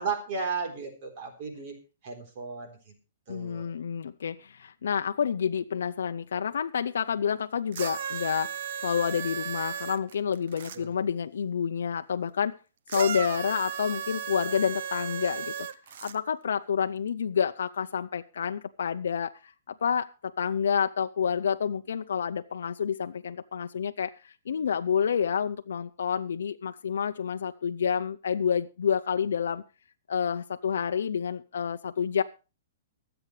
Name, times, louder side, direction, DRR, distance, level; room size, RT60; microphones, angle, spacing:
voice 1, 0.0-1.7 2.0-2.8 3.3-3.7 10.7-10.9, right 5 dB, 40° right, 3 dB, 3.6 m, -34 dB
voice 2, 3.3-8.6 8.8-12.5 12.9-15.5 16.0-29.6 30.1-32.2, left 7 dB, 85° left, 7 dB, 0.6 m, -29 dB
sound 1, 7.7-10.8 12.9-16.2 17.1-17.2, right 8 dB, 55° right, 0.8 m, -35 dB
24.0 x 8.0 x 3.2 m, 0.33 s
hypercardioid pair, 165°, 0 cm